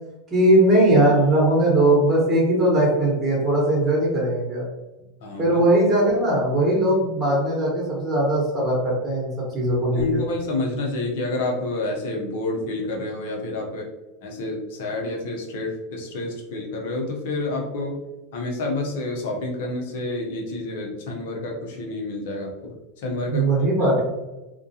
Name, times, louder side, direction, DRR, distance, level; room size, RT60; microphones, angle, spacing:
voice 1, 0.3-4.7 5.4-10.2 23.3-24.0, right 1 dB, 20° right, -4 dB, 1.1 m, -19 dB
voice 2, 5.2-5.6 9.9-13.9 14.2-18.0 18.3-23.5 23.8-24.0, left 2 dB, 70° left, 1 dB, 0.7 m, -29 dB
2.3 x 2.2 x 2.7 m, 1.0 s
hypercardioid pair, 105°, 0 cm